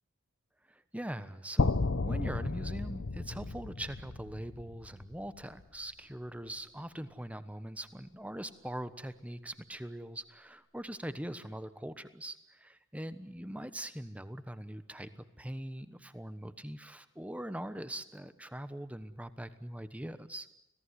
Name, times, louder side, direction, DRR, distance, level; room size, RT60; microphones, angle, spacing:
voice 1, 0.7-20.5, right 1 dB, 5° right, 12 dB, 1.1 m, -42 dB
sound 1, 1.6-5.6, left 3 dB, 65° left, 0.8 m, -33 dB
26.0 x 17.5 x 9.8 m, 0.86 s
head